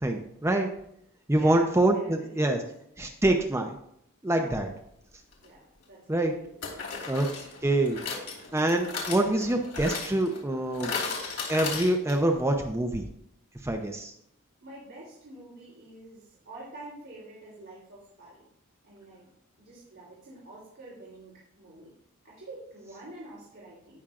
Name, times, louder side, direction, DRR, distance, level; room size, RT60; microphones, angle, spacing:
voice 1, 0.0-0.7 1.3-2.6 3.0-3.7 4.2-4.7 6.1-6.3 7.1-7.3 7.6-8.0 8.5-11.0 11.5-13.0 13.6-14.1, right 1 dB, 10° right, 3 dB, 0.7 m, -25 dB
voice 2, 1.3-2.7 4.2-4.6 5.4-6.6 14.6-18.4 18.8-19.3 19.6-21.9 22.2-24.0, right 2 dB, 55° right, -7 dB, 3.4 m, -47 dB
sound 1, 5.3-5.5 6.6-12.4 12.6-12.7 12.9-13.0, left 4 dB, 85° left, 3.0 m, -36 dB
17.0 x 6.1 x 2.5 m, 0.74 s
head